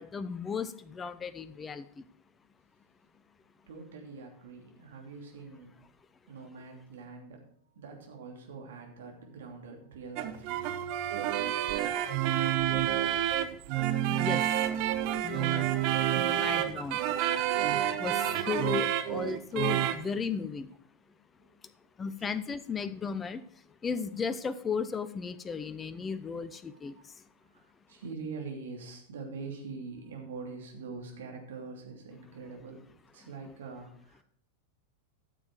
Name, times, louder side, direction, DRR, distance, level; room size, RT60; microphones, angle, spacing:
voice 1, 0.0-1.8 14.1-14.4 15.2-15.7 16.1-17.0 18.0-20.7 22.0-23.4 23.8-26.9, left 6 dB, 20° left, 14 dB, 0.7 m, -35 dB
voice 2, 3.7-5.8 6.3-10.7 21.4-21.5 22.2-22.3 26.7-27.0 27.4-32.8 33.1-34.2, right 4 dB, 60° right, 1 dB, 2.9 m, -45 dB
sound 1, 10.2-20.1, right 11 dB, 45° right, 0.8 m, -29 dB
13.5 x 7.4 x 4.6 m, 0.64 s
figure-of-eight pair, 90°, 0 cm